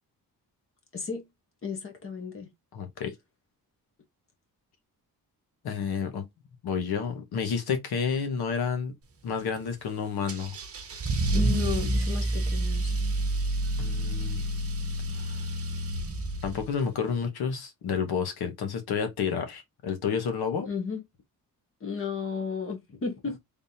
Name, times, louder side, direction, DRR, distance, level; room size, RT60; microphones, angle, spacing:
voice 1, 0.9-1.3 1.6-2.5 11.3-12.9 20.6-21.0 21.8-23.4, left 5 dB, 35° left, 1.2 m, -33 dB
voice 2, 2.7-3.1 5.6-6.2 6.6-9.0 9.2-10.6 10.9-11.0 13.8-14.4 15.2-15.4 16.4-20.7, left 6 dB, 85° left, 1.2 m, -30 dB
Car / Engine starting / Accelerating revving vroom, 10.3-16.8, right 1 dB, 40° right, 0.8 m, -29 dB
3.6 x 3.5 x 2.8 m
wide cardioid pair, 175°, 37 cm